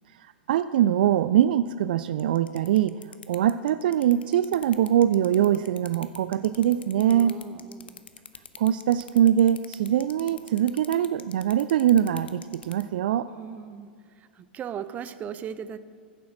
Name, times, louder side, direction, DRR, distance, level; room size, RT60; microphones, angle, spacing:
voice 1, 0.5-2.9 3.3-7.4 8.6-13.3, right 11 dB, 60° right, 14 dB, 0.3 m, -23 dB
sound 1, 2.2-12.8, left 7 dB, 75° left, 0.8 m, -43 dB
voice 2, 7.1-8.0 13.4-13.9 14.4-15.8, right 8 dB, 25° right, 13 dB, 0.6 m, -37 dB
15.0 x 7.1 x 6.3 m, 2.2 s
figure-of-eight pair, 95°, 6 cm